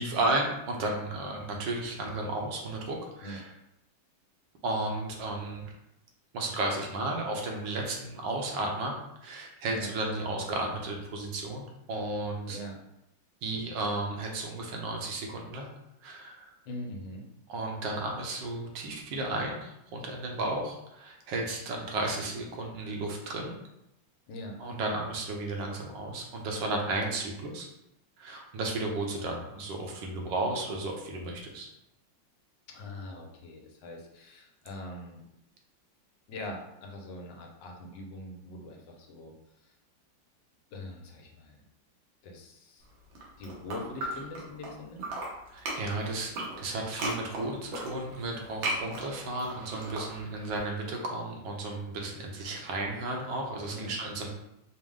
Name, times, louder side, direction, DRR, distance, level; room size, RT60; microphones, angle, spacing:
voice 1, 0.0-3.5 4.6-5.7 6.3-12.6 13.4-15.7 16.0-16.5 17.5-23.6 24.6-27.7 28.2-31.7 45.5-54.3, right 2 dB, 75° right, 1 dB, 1.4 m, -33 dB
voice 2, 12.5-12.8 16.6-17.3 24.3-24.6 32.7-35.2 36.3-39.7 40.7-41.6 42.2-42.9 43.4-45.0 53.6-53.9, left 1 dB, 75° left, 1 dB, 1.4 m, -42 dB
sound 1, 43.0-44.7 45.0-50.6, right 2 dB, 90° right, 1.7 m, -36 dB
5.1 x 2.0 x 3.6 m, 0.85 s
omnidirectional pair, 2.1 m